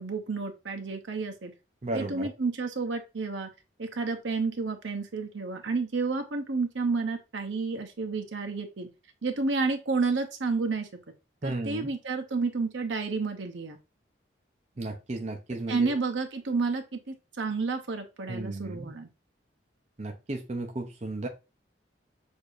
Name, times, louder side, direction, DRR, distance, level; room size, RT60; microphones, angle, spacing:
voice 1, 0.0-1.5 1.9-3.5 3.8-8.9 9.2-10.9 11.4-13.8 15.7-19.1, right 4 dB, 80° right, 0.8 m, -30 dB
voice 2, 1.8-2.3 11.4-11.9 14.8-16.0 18.3-18.9 20.0-21.3, right 2 dB, 35° right, 0.6 m, -34 dB
6.4 x 2.7 x 2.5 m
head